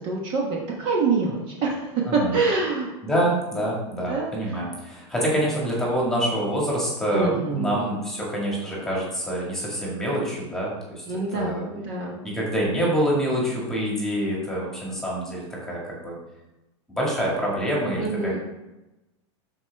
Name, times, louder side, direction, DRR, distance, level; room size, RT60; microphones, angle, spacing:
voice 1, 0.0-2.9 4.1-4.3 7.1-7.9 11.1-12.2 18.0-18.4, right 4 dB, 30° right, -2 dB, 1.2 m, -26 dB
voice 2, 2.1-2.4 3.0-11.0 11.3-11.6 12.2-16.2 16.9-18.4, right 1 dB, 5° left, -4 dB, 1.8 m, -26 dB
13.0 x 4.7 x 3.4 m, 1.0 s
supercardioid pair, 175°, 15 cm